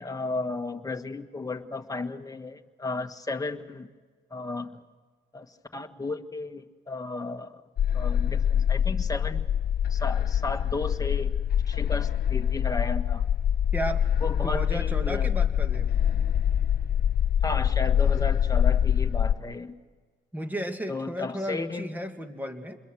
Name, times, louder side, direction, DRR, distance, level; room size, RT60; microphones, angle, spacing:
voice 1, 0.0-3.9 4.3-4.8 5.3-7.6 7.9-9.5 9.9-11.3 11.7-13.2 14.2-15.3 17.4-19.8 20.9-21.9, left 3 dB, 20° left, 5 dB, 1.7 m, -34 dB
sound 1, 7.8-19.3, left 9 dB, 50° left, 0.7 m, -25 dB
voice 2, 13.7-14.0 14.4-15.9 20.3-22.8, equal, 10° right, 5 dB, 2.4 m, -33 dB
27.5 x 22.0 x 6.3 m, 1.4 s
cardioid pair, 90°, 20 cm